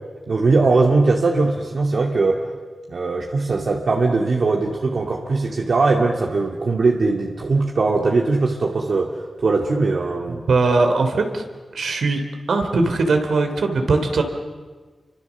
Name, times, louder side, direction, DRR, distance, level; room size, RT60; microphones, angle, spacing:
voice 1, 0.3-2.4 2.9-10.4, right 3 dB, 60° right, 0 dB, 2.2 m, -20 dB
voice 2, 10.3-11.4 11.7-12.2 12.5-14.2, right 3 dB, 80° right, 5 dB, 3.3 m, -20 dB
30.0 x 25.0 x 7.2 m, 1.4 s
wide cardioid pair, 120°, 0 cm